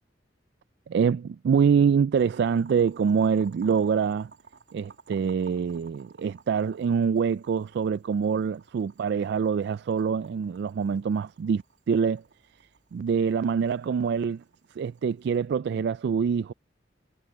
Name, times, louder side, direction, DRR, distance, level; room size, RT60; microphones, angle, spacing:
voice 1, 0.9-4.3 4.7-12.2 12.9-14.4 14.8-16.5, right 6 dB, 60° right, 0.3 m, -25 dB
Boiling, 2.2-15.4, right 5 dB, 80° right, 2.5 m, -55 dB
head